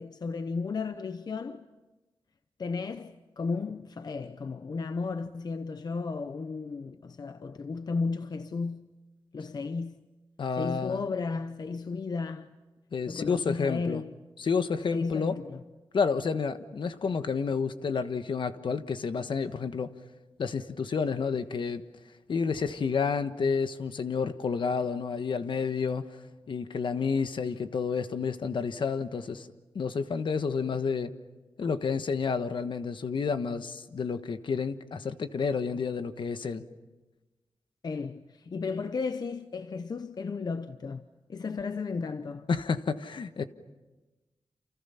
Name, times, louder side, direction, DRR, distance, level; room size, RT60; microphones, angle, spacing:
voice 1, 0.0-1.7 2.6-8.9 9.3-10.1 10.6-12.5 13.1-14.2 14.9-15.6 37.8-42.5, left 4 dB, 50° left, 0.8 m, -34 dB
voice 2, 10.4-11.0 12.9-14.0 14.4-15.4 15.9-19.9 20.4-21.8 22.3-26.0 26.5-29.5 29.7-31.1 31.6-36.6 42.5-43.4, left 5 dB, 65° left, 1.3 m, -30 dB
29.0 x 28.5 x 5.7 m
wide cardioid pair, 95°, 9 cm